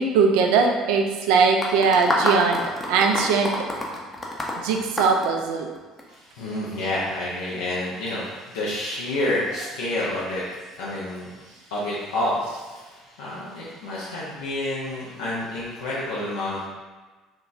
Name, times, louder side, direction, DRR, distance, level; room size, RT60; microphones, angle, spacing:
voice 1, 0.0-4.0 4.6-5.7, right 5 dB, 65° right, 3 dB, 0.3 m, -21 dB
sound 1, 1.6-6.0, left 1 dB, 15° left, 0.6 m, -27 dB
voice 2, 6.1-16.7, left 1 dB, 70° left, -7 dB, 0.5 m, -29 dB
3.6 x 2.9 x 2.5 m, 1.3 s
figure-of-eight pair, 55°, 0 cm